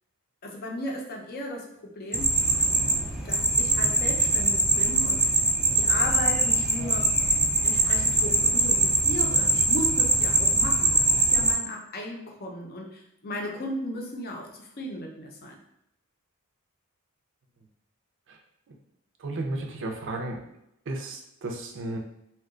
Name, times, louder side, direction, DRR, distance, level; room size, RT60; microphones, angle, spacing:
voice 1, 0.4-2.4 3.2-7.1 7.6-15.6, left 1 dB, 45° left, 1 dB, 0.6 m, -36 dB
sound 1, 2.1-11.5, right 1 dB, 5° right, 0.3 m, -23 dB
voice 2, 19.2-20.4 20.9-22.0, right 2 dB, 55° right, 3 dB, 0.5 m, -33 dB
2.8 x 2.2 x 3.7 m, 0.81 s
head